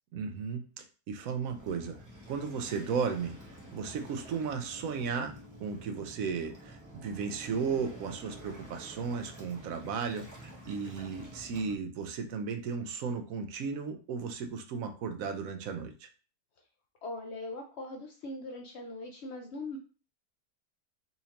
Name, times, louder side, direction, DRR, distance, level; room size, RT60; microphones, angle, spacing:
voice 1, 0.1-2.0 2.3-3.3 3.7-16.1, right 5 dB, 65° right, 6 dB, 0.9 m, -35 dB
Waves surf, 1.5-11.7, right 1 dB, 15° right, 0.6 m, -49 dB
voice 2, 17.0-19.8, left 2 dB, 75° left, 2 dB, 0.6 m, -40 dB
4.2 x 2.6 x 2.8 m, 0.36 s
omnidirectional pair, 1.8 m